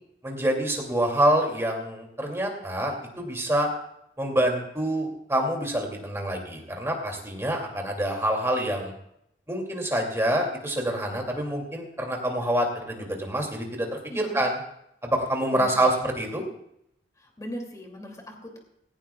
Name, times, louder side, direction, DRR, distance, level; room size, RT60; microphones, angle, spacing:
voice 1, 0.2-3.7 4.2-8.9 9.5-13.9 14.1-14.5 15.0-16.4, right 1 dB, 15° right, 1 dB, 2.6 m, -26 dB
voice 2, 14.1-14.4 15.5-15.8 17.2-18.6, equal, 20° left, 1 dB, 2.6 m, -39 dB
17.5 x 17.0 x 2.3 m, 0.77 s
head